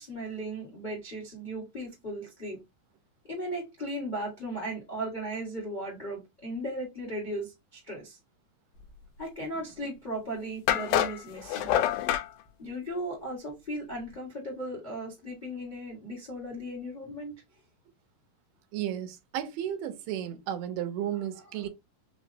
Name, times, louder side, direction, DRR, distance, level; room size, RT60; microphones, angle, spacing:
voice 1, 0.0-2.6 3.3-8.2 9.2-11.7 12.6-17.3, right 1 dB, 45° left, 0.5 m, -36 dB
sound 1, 9.8-9.9 10.7-12.3, left 11 dB, 80° left, 1.9 m, -26 dB
voice 2, 18.7-21.7, right 10 dB, 85° right, 2.5 m, -33 dB
5.4 x 2.0 x 2.7 m
omnidirectional pair, 4.0 m